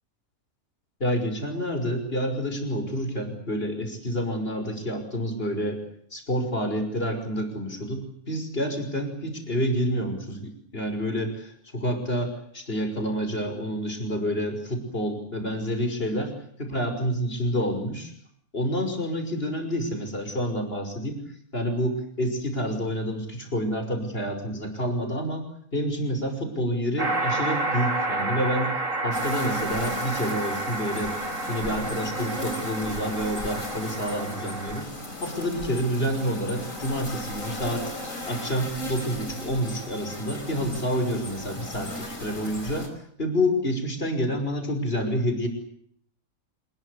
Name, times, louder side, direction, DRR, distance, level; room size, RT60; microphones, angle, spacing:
voice 1, 1.0-5.8 6.1-18.1 18.5-21.2 21.5-28.8 29.0-31.1 31.5-34.9 35.2-37.9 38.2-42.9 43.2-45.5, equal, 40° left, 6 dB, 6.0 m, -28 dB
sound 1, 27.0-34.8, right 2 dB, 60° right, 2.8 m, -30 dB
sound 2, 29.1-42.9, left 1 dB, 65° left, 5.6 m, -36 dB
28.0 x 21.5 x 8.4 m, 0.66 s
omnidirectional pair, 1.5 m